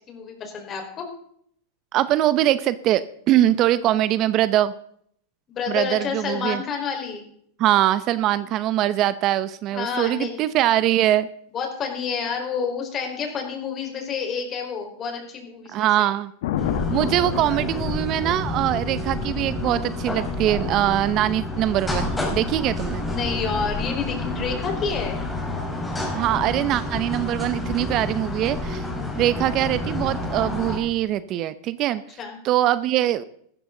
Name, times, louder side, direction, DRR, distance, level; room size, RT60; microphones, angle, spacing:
voice 1, 0.1-1.1 5.5-7.2 9.7-10.4 11.5-16.1 23.0-25.2 32.2-32.4, left 6 dB, 35° left, 3 dB, 4.5 m, -29 dB
voice 2, 1.9-4.7 5.7-6.6 7.6-11.3 15.7-16.3 16.9-23.1 26.1-28.9 29.1-32.0 32.4-33.2, right 13 dB, 45° right, 15 dB, 0.8 m, -22 dB
Thunder, 16.4-24.5 27.2-27.5, left 10 dB, 70° left, 1.3 m, -34 dB
sound 1, 16.6-30.8, left 2 dB, 10° left, 4.5 m, -29 dB
15.0 x 13.5 x 3.9 m, 0.65 s
hypercardioid pair, 110°, 0 cm